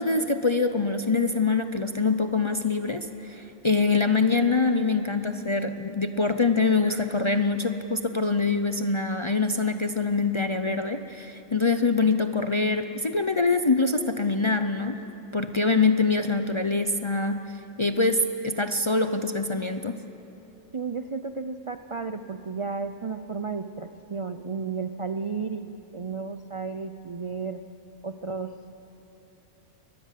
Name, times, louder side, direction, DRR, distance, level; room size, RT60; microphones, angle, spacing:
voice 1, 0.0-15.0 15.3-17.4 17.8-20.0, left 3 dB, 35° left, 8 dB, 0.5 m, -24 dB
voice 2, 20.7-27.6 28.0-28.5, right 5 dB, 45° right, 9 dB, 0.4 m, -33 dB
23.0 x 19.0 x 7.5 m, 3.0 s
omnidirectional pair, 1.3 m